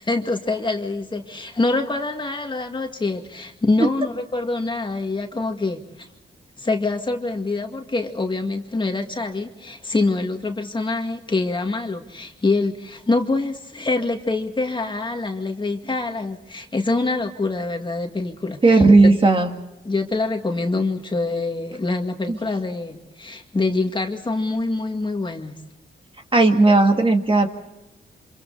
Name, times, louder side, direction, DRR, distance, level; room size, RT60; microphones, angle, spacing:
voice 1, 0.0-5.8 6.6-19.1 19.9-25.6, left 3 dB, 25° left, 4 dB, 2.1 m, -25 dB
voice 2, 18.6-19.5 22.3-22.4 26.3-27.5, right 3 dB, 25° right, 4 dB, 2.1 m, -15 dB
29.0 x 26.5 x 4.1 m, 0.97 s
cardioid pair, 110°, 19 cm